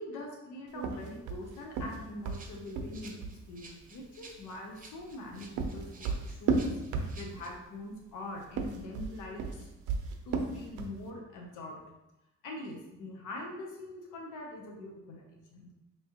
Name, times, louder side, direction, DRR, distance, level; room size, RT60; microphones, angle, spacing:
voice 1, 0.0-6.7 7.2-9.7 10.2-11.8 12.4-15.7, left 1 dB, 85° left, 0 dB, 0.8 m, -43 dB
sound 1, 0.8-3.4 5.1-7.5 8.4-11.0, right 4 dB, 85° right, 0.6 m, -33 dB
Rattle (instrument), 2.3-7.5, right 3 dB, 30° right, 0.7 m, -54 dB
4.6 x 2.9 x 2.8 m, 0.95 s
cardioid pair, 90°, 30 cm